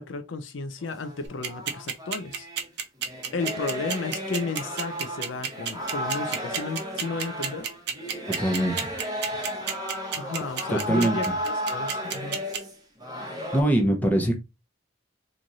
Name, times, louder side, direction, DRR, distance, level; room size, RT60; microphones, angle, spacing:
voice 1, 0.0-2.5 3.3-7.7 10.1-12.4, left 3 dB, 70° left, 0.5 m, -33 dB
sound 1, 0.8-2.7 3.0-13.6, equal, 20° right, 1.0 m, -34 dB
sound 2, 1.2-12.6, right 7 dB, 55° right, 0.7 m, -29 dB
voice 2, 8.3-8.9 10.7-11.2 13.5-14.4, right 1 dB, 10° left, 0.8 m, -23 dB
3.1 x 2.5 x 3.9 m
head